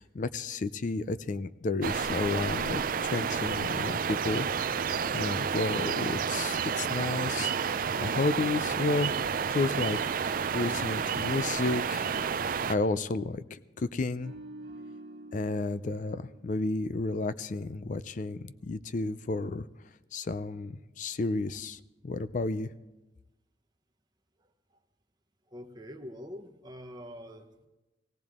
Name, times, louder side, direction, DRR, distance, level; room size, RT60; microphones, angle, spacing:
voice 1, 0.0-4.5 5.1-7.5 7.8-9.1 9.5-10.0 10.5-12.0 12.7-14.3 15.3-19.6 20.1-22.7, left 3 dB, 45° left, 15 dB, 0.4 m, -32 dB
sound 1, 1.8-12.8, right 6 dB, 50° right, 0.4 m, -30 dB
sound 2, 14.2-17.4 17.8-18.0, right 1 dB, 70° right, 1.4 m, -49 dB
voice 2, 25.5-27.7, equal, 25° right, 5 dB, 1.0 m, -45 dB
17.5 x 17.0 x 3.6 m, 1.1 s
head